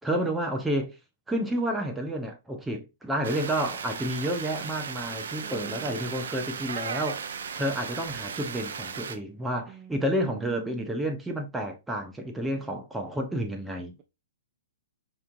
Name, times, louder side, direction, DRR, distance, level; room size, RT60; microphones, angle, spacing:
voice 1, 0.0-1.0 1.3-13.9, right 1 dB, 5° right, 0.8 m, -30 dB
sound 1, 3.2-9.2, right 6 dB, 70° right, 0.6 m, -36 dB
voice 2, 5.4-6.1 9.7-11.0, right 12 dB, 30° right, 0.5 m, -44 dB
4.8 x 3.1 x 2.6 m
hypercardioid pair, 135°, 0 cm